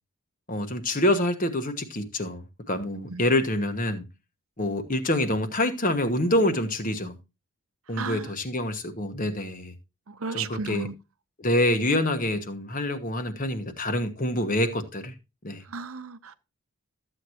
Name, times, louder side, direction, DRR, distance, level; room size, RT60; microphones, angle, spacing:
voice 1, 0.5-4.1 4.6-7.1 7.9-9.7 10.3-10.9 11.4-15.1 15.4-15.6, left 1 dB, 35° left, 1.3 m, -26 dB
voice 2, 7.9-8.3 10.1-10.9 15.7-16.3, right 5 dB, 70° right, 0.8 m, -34 dB
13.5 x 8.0 x 2.9 m
head